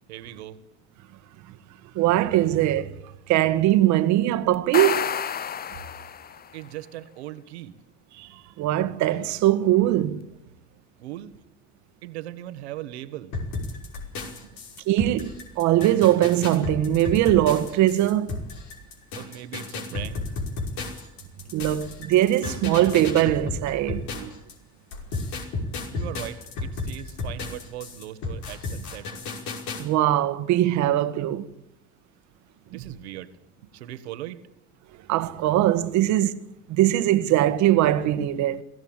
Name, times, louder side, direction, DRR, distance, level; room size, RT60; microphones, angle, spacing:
voice 1, 0.1-0.6 6.5-7.7 11.0-11.3 12.0-13.3 14.4-14.5 19.1-20.3 25.9-29.1 32.7-33.3 33.6-34.4, right 13 dB, 80° right, 1.7 m, -39 dB
voice 2, 2.0-2.9 3.3-5.0 8.2-8.3 8.6-10.2 14.9-18.4 21.5-24.3 29.8-31.5 32.7-32.8 35.1-36.3 36.7-38.6, right 13 dB, 60° right, 1.7 m, -21 dB
sound 1, 4.5-6.5, left 8 dB, 30° left, 0.7 m, -29 dB
sound 2, 13.3-24.5 24.9-29.8, left 3 dB, 60° left, 5.4 m, -33 dB
22.5 x 16.0 x 8.9 m
hypercardioid pair, 70°, 32 cm